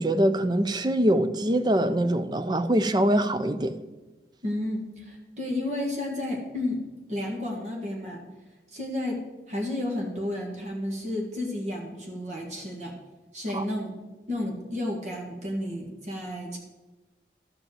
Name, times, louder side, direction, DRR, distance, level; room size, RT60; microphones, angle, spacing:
voice 1, 0.0-3.8 13.5-13.6, right 1 dB, 25° right, 0.5 m, -23 dB
voice 2, 4.4-6.8 7.1-8.2 8.7-9.2 9.5-12.9 13.3-13.9 14.3-16.6, left 1 dB, 40° right, 1.6 m, -32 dB
12.0 x 5.3 x 7.8 m
head